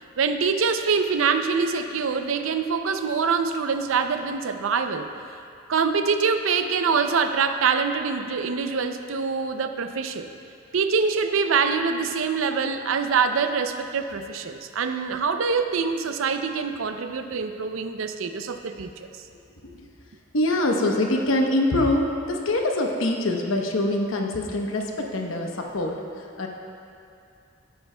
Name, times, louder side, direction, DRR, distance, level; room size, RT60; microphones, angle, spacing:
voice 1, 0.2-5.1 5.7-10.3 10.7-19.1, right 5 dB, 85° right, 8 dB, 0.5 m, -24 dB
voice 2, 20.3-26.5, left 1 dB, 85° left, 1 dB, 0.9 m, -24 dB
15.0 x 8.5 x 2.2 m, 2.5 s
head